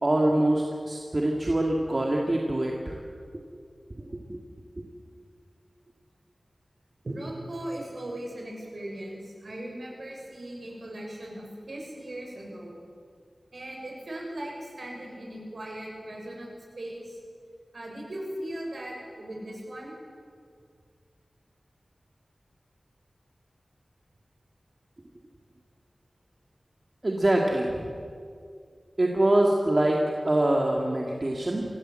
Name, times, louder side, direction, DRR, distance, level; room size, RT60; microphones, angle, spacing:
voice 1, 0.0-3.0 4.0-4.4 4.8-4.9 27.0-27.9 29.0-31.7, right 1 dB, 40° right, -1 dB, 2.3 m, -24 dB
voice 2, 7.0-12.8 13.5-16.5 16.8-17.2 17.7-19.9, right 1 dB, 65° right, -1 dB, 6.8 m, -38 dB
25.5 x 16.5 x 7.8 m, 2.3 s
wide cardioid pair, 75°, 0 cm